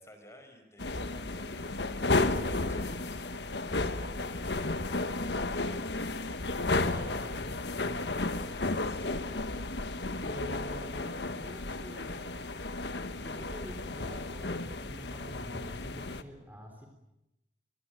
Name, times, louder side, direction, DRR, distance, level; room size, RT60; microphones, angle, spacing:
voice 1, 0.0-3.4 6.9-7.5 8.2-9.0, left 1 dB, 15° left, 6 dB, 4.9 m, -55 dB
sound 1, 0.8-16.2, left 2 dB, 85° left, 1.4 m, -33 dB
voice 2, 6.8-7.4 10.2-12.4 13.2-16.9, equal, 10° right, 3 dB, 3.6 m, -47 dB
26.0 x 22.0 x 9.1 m, 0.92 s
head